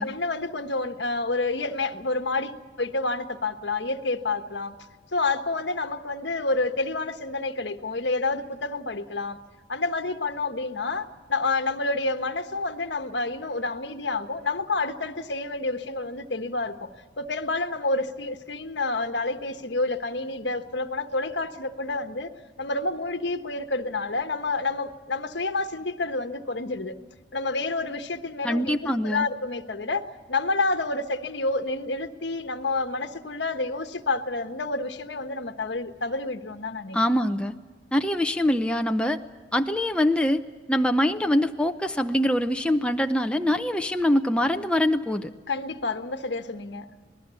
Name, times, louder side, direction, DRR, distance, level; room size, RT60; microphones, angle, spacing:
voice 1, 0.0-4.8 5.1-9.4 9.7-16.9 17.2-22.3 22.6-26.9 27.3-37.0 45.5-46.9, left 3 dB, 70° left, 9 dB, 1.3 m, -29 dB
voice 2, 28.4-29.3 36.9-37.5 37.9-39.2 39.5-40.4 40.7-45.3, left 1 dB, 5° left, 5 dB, 0.6 m, -24 dB
26.5 x 19.5 x 7.0 m, 1.4 s
head